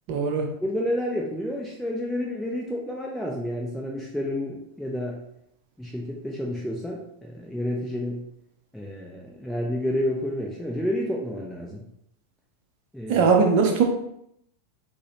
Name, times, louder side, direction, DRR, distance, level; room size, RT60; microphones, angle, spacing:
voice 1, 0.1-0.5 13.1-13.8, right 5 dB, 45° right, 3 dB, 0.5 m, -20 dB
voice 2, 0.6-5.2 5.8-8.2 8.7-11.8 12.9-13.3, left 1 dB, ahead, -3 dB, 0.5 m, -30 dB
6.1 x 2.1 x 2.8 m, 0.75 s
figure-of-eight pair, 90°, 0 cm